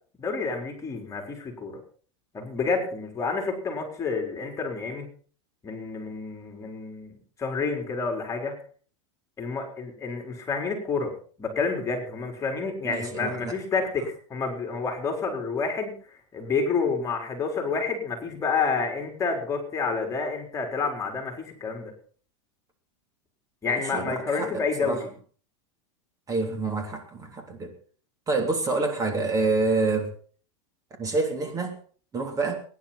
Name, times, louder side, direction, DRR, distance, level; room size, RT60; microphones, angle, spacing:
voice 1, 0.2-1.8 2.3-5.1 5.6-8.5 9.4-11.1 11.4-15.9 16.3-21.9 23.6-25.1, left 4 dB, 20° left, 2 dB, 4.4 m, -29 dB
voice 2, 12.8-13.5 23.6-25.0 26.3-27.7 28.3-30.1 31.0-31.8 32.1-32.6, right 3 dB, 20° right, 4 dB, 3.4 m, -27 dB
22.0 x 10.5 x 4.3 m, 0.44 s
supercardioid pair, 130°, 15 cm